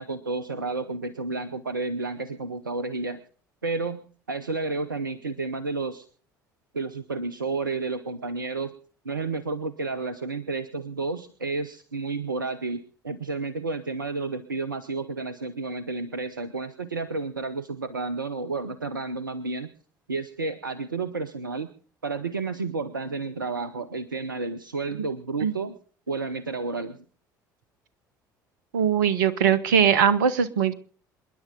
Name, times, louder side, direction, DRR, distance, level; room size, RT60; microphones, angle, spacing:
voice 1, 0.0-3.2 3.6-4.0 4.3-6.1 6.7-8.7 9.0-19.7 20.1-21.7 22.0-25.7 26.1-27.0, right 3 dB, 85° right, 13 dB, 0.8 m, -31 dB
voice 2, 28.7-30.7, right 7 dB, 70° right, 16 dB, 1.1 m, -21 dB
27.5 x 10.5 x 3.8 m, 0.43 s
figure-of-eight pair, 60°, 11 cm